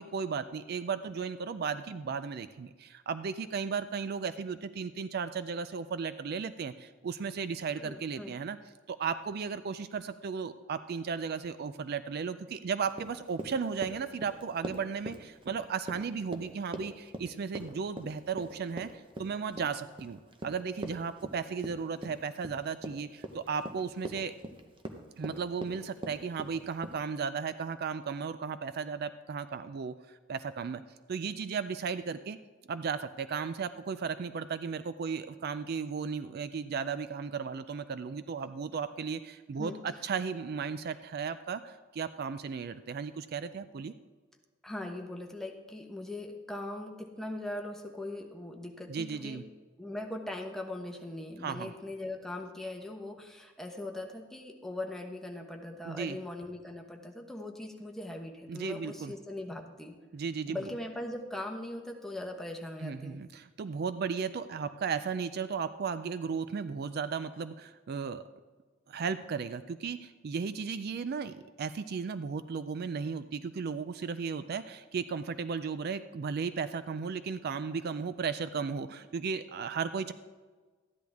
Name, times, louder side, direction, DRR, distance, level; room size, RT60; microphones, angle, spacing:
voice 1, 0.0-8.6 8.9-24.3 25.2-30.8 31.1-32.4 32.7-43.9 48.9-49.4 51.4-51.7 55.9-56.2 58.5-59.1 60.1-60.6 62.8-68.2 68.9-80.1, right 5 dB, 55° right, 12 dB, 0.4 m, -35 dB
voice 2, 7.8-8.3 39.6-39.8 44.6-49.4 49.8-59.9 60.5-63.2, left 1 dB, ahead, 1 dB, 1.0 m, -40 dB
Run, 12.9-27.0, right 1 dB, 25° right, 0.8 m, -42 dB
13.5 x 10.5 x 3.5 m, 1.4 s
head